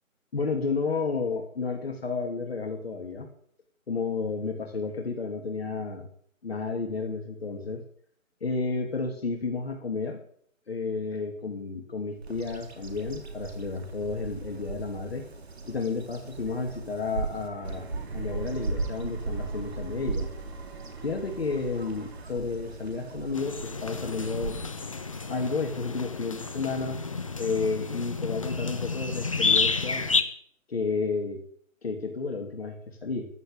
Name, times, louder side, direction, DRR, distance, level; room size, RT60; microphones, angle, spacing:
voice 1, 0.3-3.3 3.9-6.1 6.4-7.8 8.4-10.2 10.7-15.3 15.7-17.9 18.1-20.3 21.0-24.6 25.3-27.0 27.4-30.1 30.7-31.4 31.8-33.3, left 4 dB, 45° left, 3 dB, 2.8 m, -31 dB
Bird vocalization bird call bird song, 12.2-25.5, right 3 dB, 50° right, 3.0 m, -37 dB
sound 1, 17.3-22.2, right 3 dB, 20° right, 3.1 m, -45 dB
sound 2, 23.3-30.2, left 4 dB, 25° left, 0.9 m, -30 dB
14.5 x 11.0 x 9.0 m, 0.62 s
figure-of-eight pair, 160°, 41 cm